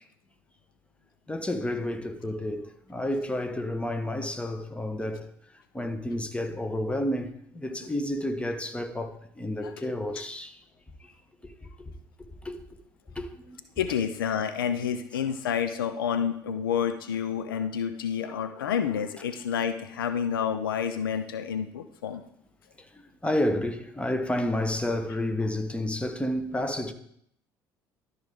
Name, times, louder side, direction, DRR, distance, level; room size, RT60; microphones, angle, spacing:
voice 1, 1.3-5.3 5.7-10.6 11.4-11.9 12.4-12.6 13.1-13.6 22.9-26.9, left 1 dB, 10° left, 1.1 m, -30 dB
voice 2, 13.8-22.2, left 8 dB, 90° left, 0.5 m, -29 dB
13.0 x 4.7 x 3.6 m
hypercardioid pair, 60°, 11 cm